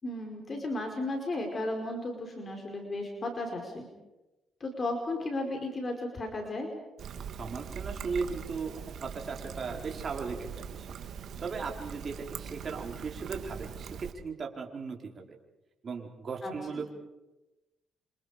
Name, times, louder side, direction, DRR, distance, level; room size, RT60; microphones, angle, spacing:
voice 1, 0.0-3.9 4.6-6.7 16.4-16.5, left 2 dB, 40° left, 3 dB, 5.0 m, -34 dB
Trickle dribble, 7.0-14.1, right 7 dB, 65° right, 1.9 m, -42 dB
voice 2, 7.4-11.0 11.4-15.3 15.8-16.9, right 5 dB, 45° right, 1 dB, 4.5 m, -37 dB
28.5 x 27.0 x 5.2 m, 1.0 s
cardioid pair, 90°, 0 cm